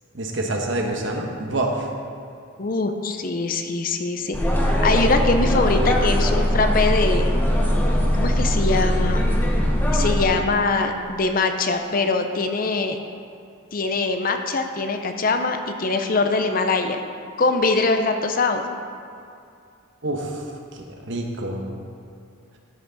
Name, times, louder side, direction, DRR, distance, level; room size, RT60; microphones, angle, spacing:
voice 1, 0.1-1.9 20.0-21.7, right 2 dB, 60° right, 1 dB, 1.1 m, -27 dB
voice 2, 2.6-4.4 4.8-7.3 8.1-9.3 9.9-13.0 13.7-17.0 17.4-18.6, left 3 dB, 45° left, 6 dB, 0.6 m, -22 dB
sound 1, 4.3-10.2, equal, 10° left, 0.9 m, -20 dB
13.0 x 5.8 x 4.0 m, 2.4 s
head